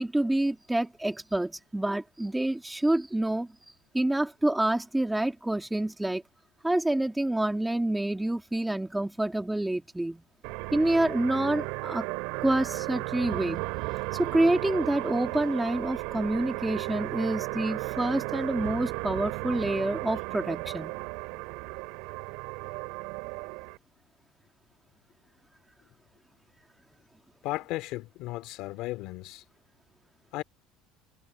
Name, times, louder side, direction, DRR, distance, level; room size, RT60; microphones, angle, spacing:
voice 1, 0.0-3.5 3.9-6.2 6.6-10.2 10.7-12.1 12.4-13.7 14.1-20.9, right 1 dB, 5° right, 2.9 m, -27 dB
sound 1, 10.4-23.8, right 28 dB, 80° right, 7.1 m, -35 dB
voice 2, 27.4-29.4 30.3-30.4, left 18 dB, 70° left, 2.9 m, -35 dB
supercardioid pair, 115°, 0 cm